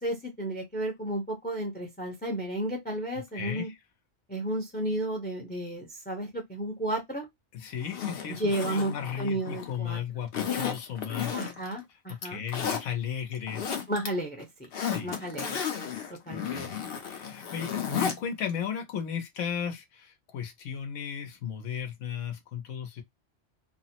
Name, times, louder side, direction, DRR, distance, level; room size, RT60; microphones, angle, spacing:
voice 1, 0.0-3.7 4.3-7.3 8.4-8.9 9.2-10.0 11.3-12.4 13.9-15.6 16.1-16.6, right 1 dB, 10° left, 0.6 m, -33 dB
voice 2, 3.3-3.8 7.5-11.3 12.2-13.7 14.8-15.2 16.5-23.0, left 8 dB, 90° left, 1.0 m, -35 dB
Zipper (clothing), 7.8-9.8 10.3-11.7 12.1-12.8 13.3-14.1 14.4-18.2 18.5-18.6, left 7 dB, 60° left, 0.8 m, -33 dB
3.1 x 2.0 x 2.8 m
omnidirectional pair, 1.2 m